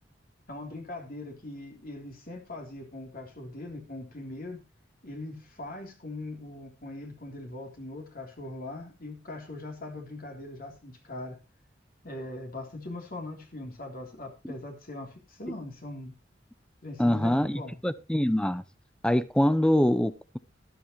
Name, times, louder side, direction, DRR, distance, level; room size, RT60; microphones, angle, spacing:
voice 1, 0.5-4.6 5.0-11.4 12.0-16.1 16.8-17.8, left 2 dB, 50° left, 3.4 m, -41 dB
voice 2, 17.0-18.6 19.0-20.4, left 1 dB, 5° left, 0.6 m, -24 dB
13.0 x 13.0 x 3.1 m
head